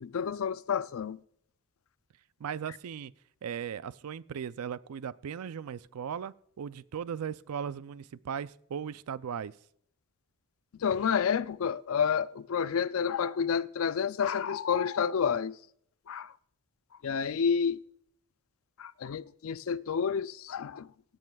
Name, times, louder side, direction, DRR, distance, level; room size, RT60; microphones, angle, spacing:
voice 1, 0.0-1.2 10.7-15.6 16.1-16.4 17.0-17.8 18.8-20.9, left 7 dB, 70° left, 0.4 m, -30 dB
voice 2, 2.4-3.1 3.4-9.6, right 7 dB, 85° right, 0.4 m, -37 dB
17.0 x 11.0 x 2.3 m
head